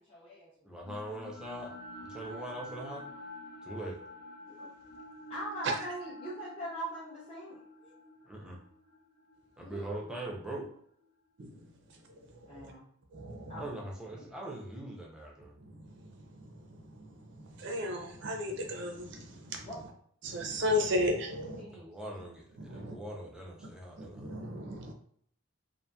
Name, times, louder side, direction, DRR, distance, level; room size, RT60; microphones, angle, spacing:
voice 1, 0.0-0.8 2.3-2.7 5.3-7.9 9.6-10.2 12.5-12.8 13.5-14.3 19.7-19.8 21.4-21.9 22.7-23.1, right 1 dB, 30° left, -10 dB, 0.7 m, -43 dB
voice 2, 0.6-1.8 2.1-3.1 3.6-4.0 8.2-8.6 9.6-10.7 13.6-15.5 21.7-24.4, right 1 dB, 5° right, -2 dB, 0.5 m, -42 dB
sound 1, 0.8-11.0, left 1 dB, 50° left, 1.1 m, -48 dB
voice 3, 11.4-12.0 12.3-12.7 13.1-13.7 15.6-19.7 20.2-21.6 22.6-23.0 24.0-24.9, left 1 dB, 55° right, 3 dB, 0.5 m, -35 dB
2.7 x 2.5 x 2.2 m, 0.65 s
head